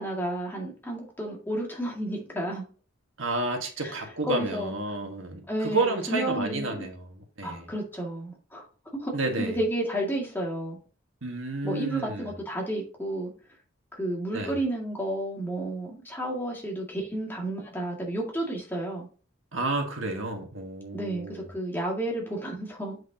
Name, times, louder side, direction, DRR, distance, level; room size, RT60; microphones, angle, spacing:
voice 1, 0.0-2.6 3.8-4.7 5.5-6.9 7.4-8.7 9.0-10.8 11.6-13.3 13.9-19.1 20.9-23.0, right 1 dB, 10° left, 2.0 m, -31 dB
voice 2, 3.2-7.7 9.1-9.6 11.2-12.3 14.3-14.5 19.5-21.4, right 2 dB, 75° right, 1.6 m, -31 dB
7.6 x 6.2 x 2.8 m
head